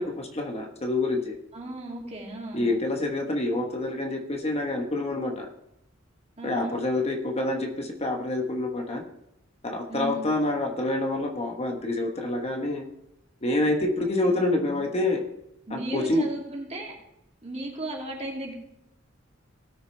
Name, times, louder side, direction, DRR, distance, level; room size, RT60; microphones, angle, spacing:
voice 1, 0.0-1.3 2.5-5.5 6.4-9.0 9.6-12.9 13.4-15.2 15.7-16.2, left 2 dB, 30° left, 2 dB, 1.2 m, -27 dB
voice 2, 1.5-2.7 6.4-6.7 9.9-10.2 14.0-14.8 15.7-17.0 17.4-18.5, right 2 dB, 35° right, -1 dB, 2.5 m, -35 dB
18.5 x 6.6 x 3.3 m, 0.84 s
head